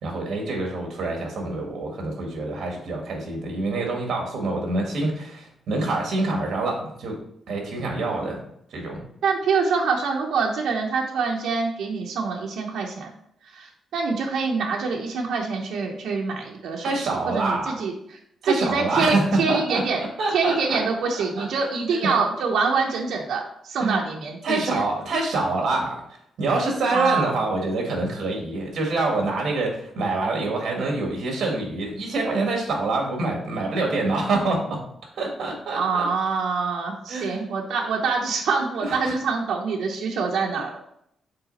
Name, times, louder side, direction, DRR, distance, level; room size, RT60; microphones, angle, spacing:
voice 1, 0.0-7.2 7.5-8.4 8.7-9.0 16.8-17.8 18.4-20.8 21.1-21.5 21.9-22.1 23.8-24.0 24.4-26.0 26.4-34.8 35.1-36.1 37.1-37.5 38.8-39.2, right 2 dB, 65° right, 1 dB, 2.0 m, -26 dB
voice 2, 9.2-13.1 13.4-17.9 18.4-20.0 20.3-24.8 26.9-27.4 35.7-40.8, right 5 dB, 80° right, 0 dB, 0.9 m, -25 dB
6.7 x 4.1 x 4.1 m, 0.73 s
wide cardioid pair, 155°, 0 cm